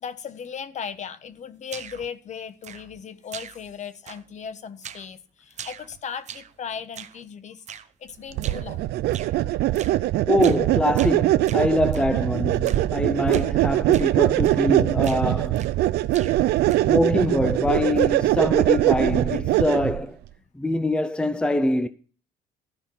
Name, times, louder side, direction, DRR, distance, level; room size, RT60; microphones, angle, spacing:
voice 1, 0.0-7.6 8.0-8.9, left 7 dB, 45° left, 1.2 m, -37 dB
sound 1, 1.7-2.1 2.6-3.0 3.3-3.8 4.1-4.4 4.8-5.1 5.5-6.6 6.9-7.2 7.7-7.9 8.4-8.7 9.1-9.4 9.7-10.0 10.4-10.7 11.0-12.1 12.6-12.9 13.3-13.5 13.9-14.1 14.4-14.7 15.0-15.8 16.1-17.0, right 8 dB, 45° right, 0.9 m, -41 dB
sound 2, 8.4-20.0, right 15 dB, 80° right, 0.6 m, -22 dB
voice 2, 10.3-15.6 16.9-20.2 20.6-21.9, left 1 dB, 5° left, 0.6 m, -24 dB
13.5 x 5.8 x 7.0 m
cardioid pair, 110°, 17 cm